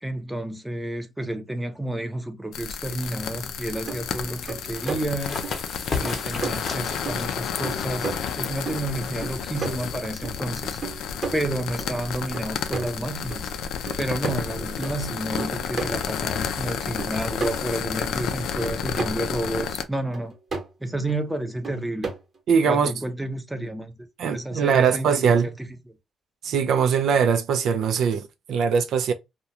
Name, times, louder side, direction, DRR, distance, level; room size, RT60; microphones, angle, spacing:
voice 1, 0.0-5.5 5.9-10.8 11.3-13.5 14.0-20.3 20.8-22.1 22.6-23.9 24.3-25.7, right 1 dB, 5° right, 0.6 m, -30 dB
sound 1, 2.5-19.8, left 7 dB, 85° left, 0.3 m, -31 dB
sound 2, 3.4-3.5 3.9-4.0 4.5-5.0 5.4-5.6 6.0-6.2 6.4-6.6 7.1-7.4 7.6-8.4 8.7-10.4 10.8-11.9 12.3-13.0 13.3-13.4 13.9-14.9 15.4-15.9 16.3-16.4 17.0-18.1 18.6-19.3 19.6-19.7 20.1-20.7 21.1-21.2 21.6-22.4, right 4 dB, 45° right, 1.0 m, -33 dB
sound 3, 4.7-10.0, left 4 dB, 45° left, 0.8 m, -35 dB
voice 2, 22.5-22.9 24.2-25.5 26.4-29.1, right 6 dB, 75° right, 0.3 m, -21 dB
2.3 x 2.2 x 2.7 m
cardioid pair, 90°, 0 cm